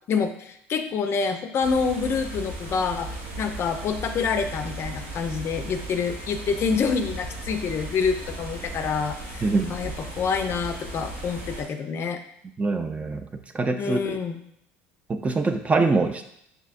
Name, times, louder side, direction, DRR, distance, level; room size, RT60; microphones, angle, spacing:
voice 1, 0.1-12.2 13.8-14.4, left 5 dB, 45° left, 7 dB, 0.5 m, -27 dB
sound 1, 1.6-11.6, right 1 dB, 75° right, 1.4 m, -36 dB
voice 2, 9.4-9.7 12.6-14.2 15.1-16.2, right 3 dB, 25° right, 7 dB, 0.4 m, -24 dB
6.2 x 2.7 x 2.5 m, 0.72 s
hypercardioid pair, 75°, 6 cm